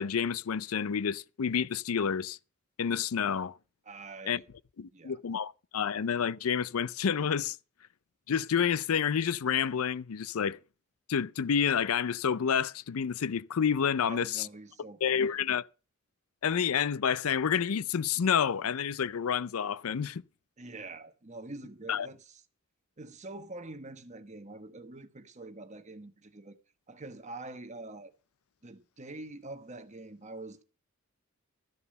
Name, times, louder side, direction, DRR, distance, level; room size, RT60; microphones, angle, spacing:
voice 1, 0.0-2.4 2.8-3.6 4.3-4.4 4.8-7.6 8.3-10.6 11.1-14.5 15.0-15.7 16.4-20.2 21.9-22.1, left 7 dB, 90° left, 0.5 m, -29 dB
voice 2, 3.8-4.4 4.9-5.2 14.0-15.2 20.6-22.4 23.0-26.6 26.9-28.1 28.6-30.6, right 2 dB, 35° right, 1.2 m, -45 dB
13.0 x 6.9 x 6.6 m
head